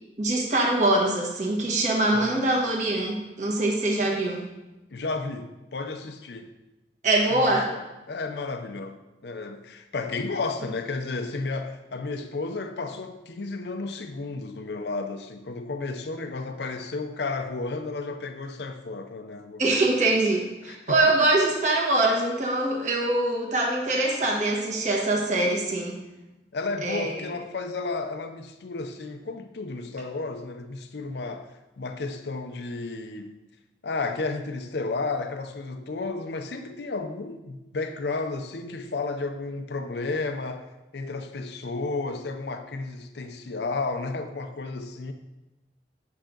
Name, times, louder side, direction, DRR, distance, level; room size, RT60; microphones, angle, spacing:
voice 1, 0.2-4.4 7.0-7.7 19.6-26.0 26.8-27.2, right 2 dB, 40° right, 1.6 m, -23 dB
voice 2, 2.1-2.5 4.9-6.5 7.3-7.8 8.1-19.8 20.6-21.3 26.5-31.5 31.8-33.4 33.8-40.7 40.9-45.1, left 3 dB, 70° left, 0.6 m, -32 dB
8.9 x 6.3 x 3.8 m
head